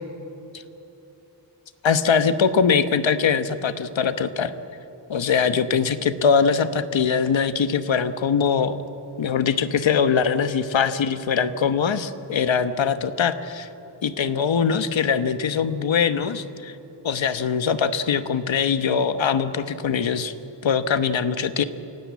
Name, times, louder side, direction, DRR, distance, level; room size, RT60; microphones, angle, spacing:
voice 1, 1.8-4.5 5.1-8.8 9.2-13.7 14.0-16.7 17.0-20.3 20.6-21.6, left 6 dB, 80° left, 10 dB, 1.2 m, -22 dB
29.0 x 17.0 x 8.4 m, 2.9 s
wide cardioid pair, 120°, 45 cm